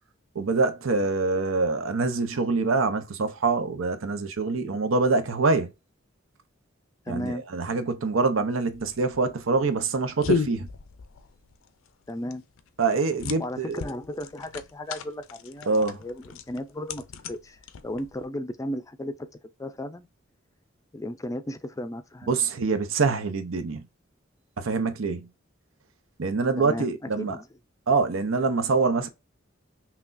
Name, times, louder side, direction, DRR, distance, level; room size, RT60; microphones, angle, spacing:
voice 1, 0.3-5.7 7.1-10.7 12.8-13.8 15.7-16.0 22.3-23.9 24.6-25.3 26.2-27.4 27.9-29.1, right 4 dB, 90° right, 0.7 m, -25 dB
voice 2, 7.1-7.4 12.1-12.4 13.4-17.6 17.8-19.3 19.6-20.1 20.9-22.3 26.6-26.9 27.2-27.5, left 1 dB, 15° left, 0.4 m, -35 dB
sound 1, 8.7-18.3, left 5 dB, 80° left, 0.5 m, -35 dB
5.7 x 2.3 x 2.5 m
head